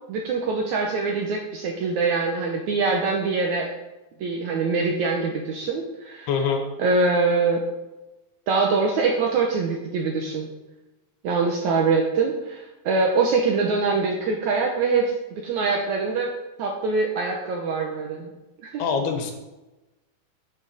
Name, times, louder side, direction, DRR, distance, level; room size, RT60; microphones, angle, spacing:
voice 1, 0.1-3.7 4.2-6.3 6.8-7.6 8.5-10.5 11.2-16.3 16.6-18.3 18.6-18.8, right 4 dB, 70° right, 1 dB, 1.8 m, -24 dB
voice 2, 6.3-6.6 18.8-19.3, left 6 dB, 85° left, 4 dB, 3.3 m, -24 dB
9.2 x 7.7 x 5.0 m, 1.0 s
omnidirectional pair, 4.5 m